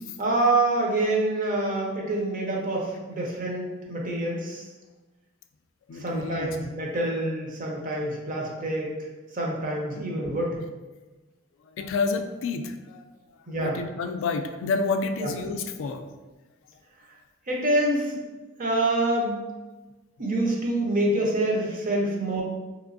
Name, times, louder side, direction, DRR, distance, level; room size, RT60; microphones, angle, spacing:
voice 1, 0.2-4.6 6.0-8.9 9.3-10.6 13.5-13.8 15.2-15.3 17.5-18.2 18.6-19.3 20.2-22.4, right 1 dB, 40° right, -2 dB, 0.7 m, -26 dB
voice 2, 5.9-6.5 11.8-13.0 13.6-16.0, left 4 dB, 65° left, 7 dB, 0.3 m, -29 dB
3.3 x 2.9 x 2.5 m, 1.2 s
head